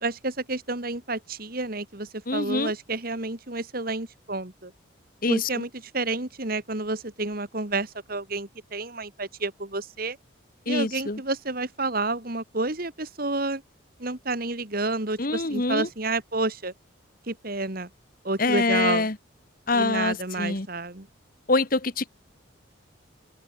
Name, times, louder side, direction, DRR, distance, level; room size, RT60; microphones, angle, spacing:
voice 1, 0.0-4.7 5.3-10.2 10.7-13.6 14.0-16.7 17.2-17.9 18.2-19.1 19.7-21.1, right 2 dB, 45° right, 2.3 m, -30 dB
voice 2, 2.3-2.7 5.2-5.5 10.7-11.2 15.2-15.9 18.4-19.2 19.7-20.7 21.5-22.1, left 3 dB, 45° left, 1.3 m, -25 dB
head